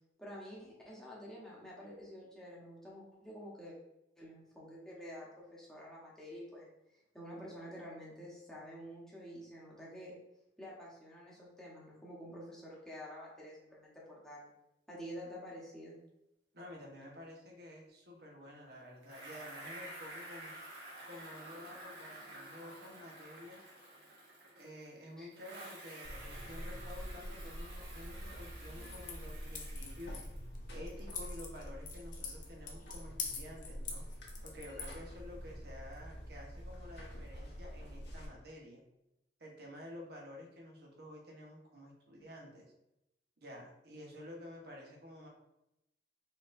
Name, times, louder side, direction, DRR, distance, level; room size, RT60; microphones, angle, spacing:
voice 1, 0.2-3.8 4.2-10.1 10.6-14.5 14.9-16.0 25.2-25.3, equal, 5° left, -6 dB, 1.1 m, -49 dB
voice 2, 16.5-20.5 21.0-23.6 24.5-30.2 30.7-34.1 34.4-38.8 39.4-42.7 43.4-45.3, left 1 dB, 60° right, -1 dB, 1.1 m, -51 dB
Bicycle, 19.0-24.9 25.3-30.5, right 1 dB, 85° right, 1.4 m, -51 dB
Buzz, 26.0-38.3, equal, 70° left, 1.2 m, -46 dB
sound 1, 28.8-35.5, left 5 dB, 50° left, 0.7 m, -47 dB
4.4 x 3.8 x 2.6 m, 0.88 s
head